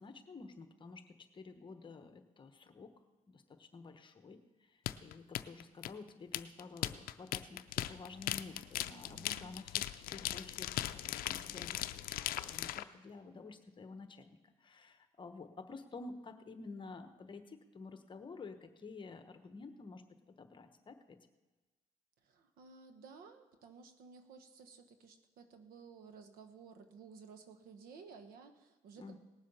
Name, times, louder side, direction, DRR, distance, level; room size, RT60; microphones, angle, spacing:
voice 1, 0.0-2.9 3.3-4.4 4.7-21.2 29.0-29.2, left 4 dB, 30° left, 8 dB, 1.1 m, -51 dB
sound 1, 4.9-12.8, left 14 dB, 80° left, 0.5 m, -38 dB
voice 2, 8.9-9.5 22.2-29.2, right 5 dB, 80° right, 8 dB, 1.2 m, -55 dB
18.5 x 7.5 x 5.5 m, 1.2 s
cardioid pair, 100°, 15 cm